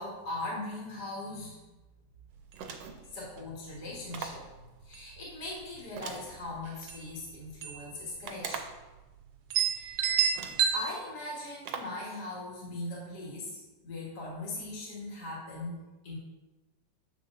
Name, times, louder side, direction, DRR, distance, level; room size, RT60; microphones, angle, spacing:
voice 1, 0.0-1.6 3.1-4.4 4.8-8.6 9.7-10.0 10.7-16.2, left 2 dB, 60° left, -5 dB, 2.2 m, -40 dB
sound 1, 2.4-2.5 2.9-3.0 3.4-3.7 4.3-4.5 4.8-5.5 6.5-6.6 6.9-7.1 7.6-7.9 8.2-8.3 9.0-9.1 9.5-10.8, right 7 dB, 70° right, 1.0 m, -29 dB
sound 2, 2.5-3.1 4.1-4.5 6.0-7.0 8.2-8.9 9.8-9.9 10.3-10.7 11.6-12.0, right 6 dB, 85° right, 1.4 m, -41 dB
7.4 x 6.3 x 2.6 m, 1.1 s
omnidirectional pair, 2.0 m